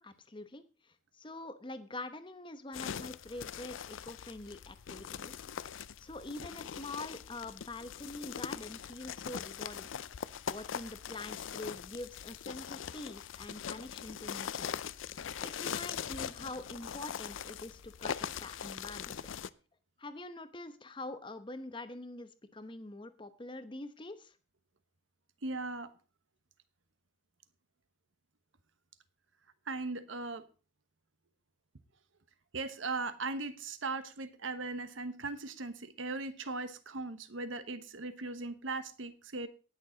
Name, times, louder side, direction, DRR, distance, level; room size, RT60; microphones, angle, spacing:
voice 1, 0.0-5.4 6.0-9.9 10.2-14.7 15.4-19.2 20.0-24.4, left 2 dB, 25° left, 11 dB, 0.9 m, -45 dB
sound 1, 2.7-19.5, left 8 dB, 85° left, 0.5 m, -41 dB
voice 2, 25.4-25.9 29.7-30.4 32.5-39.5, right 3 dB, 80° right, 11 dB, 1.1 m, -38 dB
19.0 x 6.7 x 3.9 m, 0.35 s
head